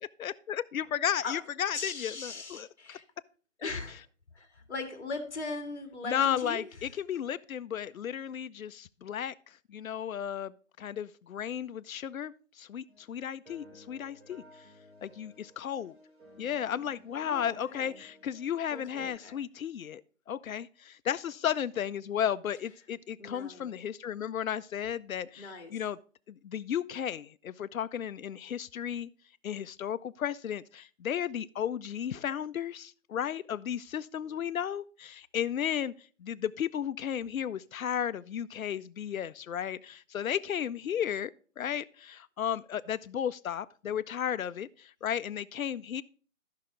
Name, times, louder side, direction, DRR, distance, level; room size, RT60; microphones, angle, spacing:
voice 1, 0.2-3.0 3.6-3.8 6.0-14.4 15.0-16.0 16.4-20.0 20.3-26.0 26.3-29.1 29.4-35.9 36.2-46.0, left 9 dB, 85° left, 0.6 m, -34 dB
voice 2, 1.7-3.0 3.6-4.0 4.3-6.7 17.2-18.0 18.7-19.4 23.2-23.7 25.3-25.8, left 3 dB, 55° left, 1.8 m, -39 dB
sound 1, 12.9-13.0 13.4-19.1, equal, 50° right, 3.4 m, -56 dB
13.5 x 5.7 x 3.7 m
hypercardioid pair, 180°, 40 cm